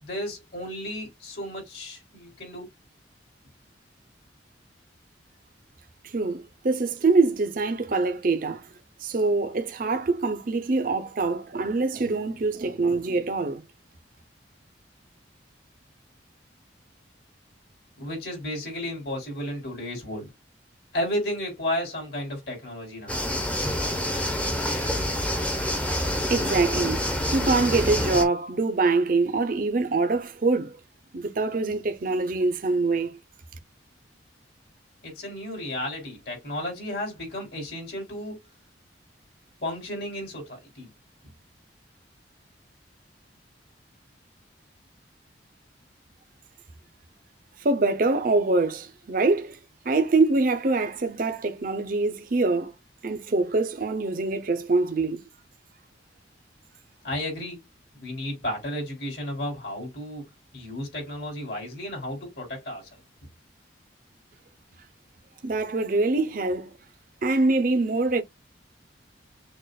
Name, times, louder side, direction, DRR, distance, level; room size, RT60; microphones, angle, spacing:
voice 1, 0.0-2.7 18.0-20.2 20.9-23.2 35.0-38.4 39.6-40.9 57.0-57.6 57.9-60.3 60.5-63.0, left 1 dB, 60° left, 3.4 m, -33 dB
voice 2, 6.0-8.7 9.0-13.6 25.6-25.7 26.3-27.0 27.3-30.7 31.1-33.2 47.6-49.6 49.8-52.7 53.0-55.2 65.4-66.7 67.2-68.2, right 3 dB, 50° right, 0.6 m, -24 dB
sound 1, 23.1-28.2, left 1 dB, 5° left, 0.9 m, -27 dB
6.5 x 2.5 x 2.3 m
head